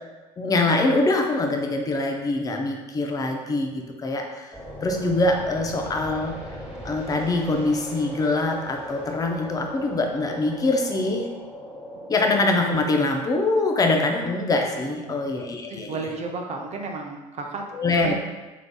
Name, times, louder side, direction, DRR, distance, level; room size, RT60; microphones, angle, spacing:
voice 1, 0.4-4.5 4.8-6.3 6.8-11.3 12.1-15.9 17.7-18.1, left 2 dB, 20° left, 3 dB, 0.5 m, -24 dB
sound 1, 4.5-12.4, equal, 5° right, 1.3 m, -38 dB
voice 2, 15.7-17.6 18.0-18.1, right 3 dB, 35° right, 2 dB, 0.7 m, -33 dB
3.7 x 3.5 x 2.2 m, 1.2 s
hypercardioid pair, 75°, 19 cm